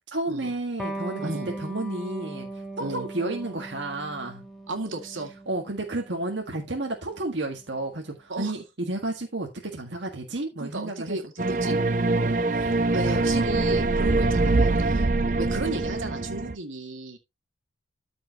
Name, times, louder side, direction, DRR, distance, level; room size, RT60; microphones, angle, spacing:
voice 1, 0.1-1.3 1.6-2.5 2.8-4.4 5.5-11.2 11.6-11.9 12.1-13.3, right 2 dB, 65° right, 1.7 m, -32 dB
Electric guitar, 0.8-7.9, right 2 dB, ahead, 1.4 m, -39 dB
voice 2, 1.2-1.5 2.8-3.1 4.7-5.3 8.3-8.5 10.6-11.8 12.7-15.1 15.4-17.2, right 2 dB, 90° right, 2.2 m, -34 dB
sound 1, 11.4-16.5, right 2 dB, 40° right, 0.5 m, -23 dB
13.5 x 5.1 x 2.9 m
head